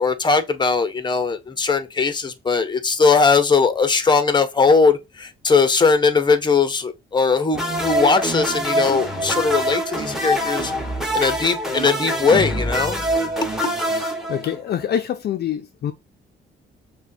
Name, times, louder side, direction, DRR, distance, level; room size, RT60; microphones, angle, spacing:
voice 1, 0.0-10.7 11.1-13.0, left 4 dB, 20° left, 0.8 m, -19 dB
sound 1, 7.5-14.8, right 1 dB, ahead, 1.4 m, -24 dB
voice 2, 14.3-15.9, left 9 dB, 55° left, 0.5 m, -25 dB
5.9 x 2.2 x 2.7 m
cardioid pair, 90°, 20 cm